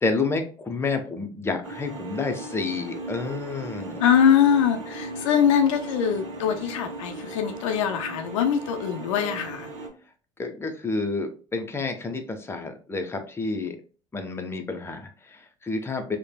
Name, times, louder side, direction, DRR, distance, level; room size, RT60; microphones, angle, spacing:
voice 1, 0.0-4.0 10.4-13.8 14.1-16.2, left 3 dB, 15° left, 5 dB, 0.6 m, -29 dB
sound 1, 1.6-9.9, right 2 dB, 90° right, 0.6 m, -37 dB
voice 2, 4.0-9.7, left 8 dB, 85° left, 6 dB, 0.4 m, -22 dB
3.2 x 2.1 x 2.2 m, 0.38 s
hypercardioid pair, 70°, 16 cm